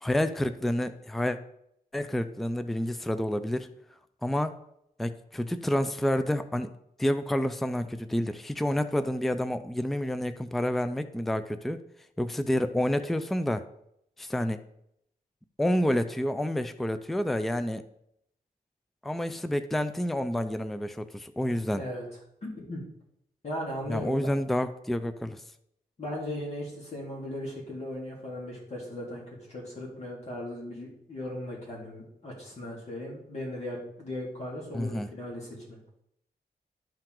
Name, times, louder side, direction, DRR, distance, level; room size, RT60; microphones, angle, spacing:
voice 1, 0.0-1.4 1.9-3.7 4.2-4.6 5.0-6.7 7.0-11.8 12.2-13.6 14.2-14.6 15.6-17.8 19.0-21.8 23.9-25.4 34.7-35.1, left 1 dB, ahead, 11 dB, 0.3 m, -29 dB
voice 2, 21.5-22.0 22.4-22.8 23.4-24.3 26.0-35.8, left 1 dB, 45° left, -4 dB, 2.2 m, -37 dB
11.5 x 4.7 x 3.8 m, 0.75 s
wide cardioid pair, 180°, 16 cm